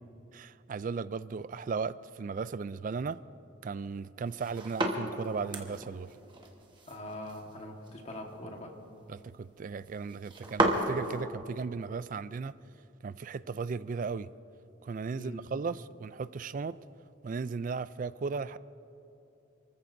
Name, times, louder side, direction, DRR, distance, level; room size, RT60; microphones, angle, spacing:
voice 1, 0.3-3.2 3.6-6.1 9.1-12.5 13.0-14.3 14.8-16.8 17.2-18.6, right 5 dB, 40° right, 16 dB, 0.3 m, -36 dB
sound 1, 4.2-11.2, right 1 dB, 25° right, 1.3 m, -35 dB
voice 2, 6.9-8.7 15.1-15.4, left 1 dB, 30° left, 2 dB, 1.4 m, -42 dB
29.0 x 14.5 x 2.7 m, 2.8 s
head